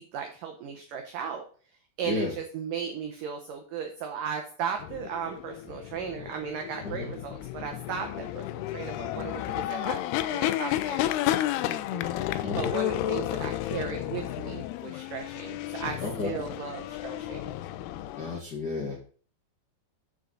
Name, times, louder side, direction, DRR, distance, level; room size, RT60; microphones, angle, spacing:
voice 1, 0.0-1.4 2.0-17.5, right 7 dB, 75° right, 4 dB, 2.0 m, -36 dB
sound 1, 4.8-18.4, left 13 dB, 80° left, 2.4 m, -32 dB
voice 2, 12.4-12.7 16.0-16.3 18.2-19.1, left 4 dB, 60° left, -3 dB, 1.0 m, -32 dB
13.5 x 5.2 x 3.9 m, 0.42 s
omnidirectional pair, 5.1 m